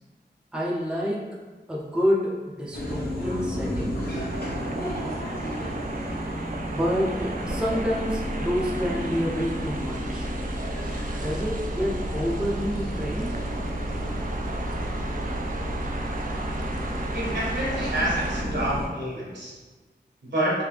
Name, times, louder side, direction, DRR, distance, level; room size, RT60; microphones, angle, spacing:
voice 1, 0.5-1.3 1.7-4.2 6.7-10.3 11.1-13.4, equal, 5° right, -4 dB, 0.6 m, -28 dB
sound 1, 2.7-18.9, equal, 55° left, 1.0 m, -31 dB
sound 2, 4.3-18.4, right 3 dB, 50° right, 0.4 m, -37 dB
voice 2, 17.1-19.5 20.2-20.5, right 1 dB, 70° right, -6 dB, 1.3 m, -28 dB
3.4 x 2.7 x 3.3 m, 1.3 s
wide cardioid pair, 70°, 19 cm